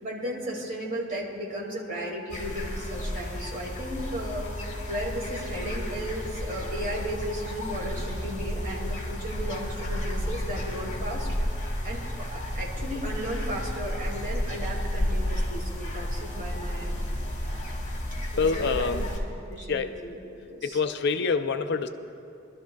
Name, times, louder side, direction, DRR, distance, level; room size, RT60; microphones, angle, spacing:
voice 1, 0.0-4.4 4.9-11.3 11.8-17.0 18.3-19.1 19.5-20.8, equal, 40° right, -3 dB, 2.3 m, -35 dB
sound 1, 2.3-19.2, equal, 35° left, 1.7 m, -32 dB
voice 2, 18.4-19.0 19.7-19.9 20.6-21.9, left 5 dB, 55° left, 9 dB, 0.4 m, -26 dB
23.5 x 12.5 x 2.3 m, 2.6 s
head